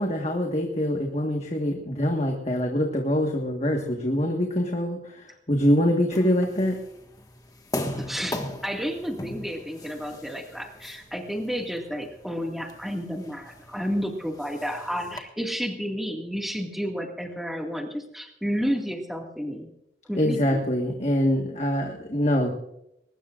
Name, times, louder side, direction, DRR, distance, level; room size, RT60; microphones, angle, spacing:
voice 1, 0.0-6.8 20.1-22.6, equal, 35° left, 2 dB, 1.6 m, -24 dB
sound 1, 6.1-15.2, left 1 dB, 20° left, 1.6 m, -39 dB
voice 2, 8.0-19.7 20.1-20.7, equal, ahead, 2 dB, 2.0 m, -31 dB
22.0 x 20.0 x 2.5 m, 0.81 s
head